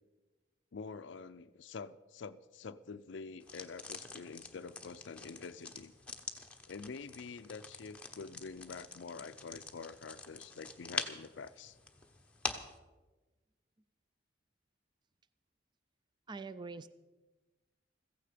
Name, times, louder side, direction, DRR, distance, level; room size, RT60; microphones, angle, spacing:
voice 1, 0.7-5.9 6.7-11.8, left 4 dB, 70° left, 12 dB, 0.5 m, -47 dB
sound 1, 3.4-12.8, left 3 dB, 5° left, 1.0 m, -45 dB
voice 2, 16.3-16.9, right 4 dB, 25° right, 14 dB, 0.4 m, -44 dB
15.5 x 15.0 x 5.0 m, 1.2 s
head